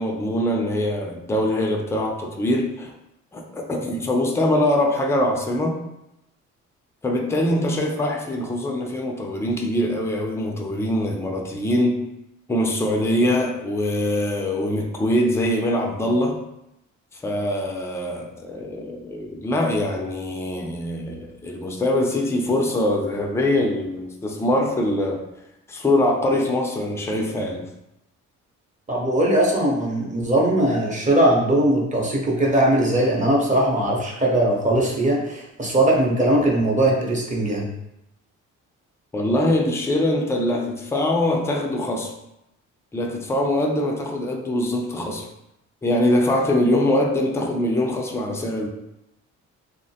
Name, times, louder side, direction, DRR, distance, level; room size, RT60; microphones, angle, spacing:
voice 1, 0.0-2.9 3.3-5.8 7.0-12.0 12.5-16.4 17.1-25.3 25.7-27.7 39.1-42.1 42.9-45.3 45.8-48.7, left 1 dB, 10° left, 1 dB, 0.4 m, -23 dB
voice 2, 28.9-37.7, right 1 dB, 25° right, -3 dB, 0.8 m, -20 dB
3.0 x 2.0 x 2.7 m, 0.86 s
cardioid pair, 90°, 30 cm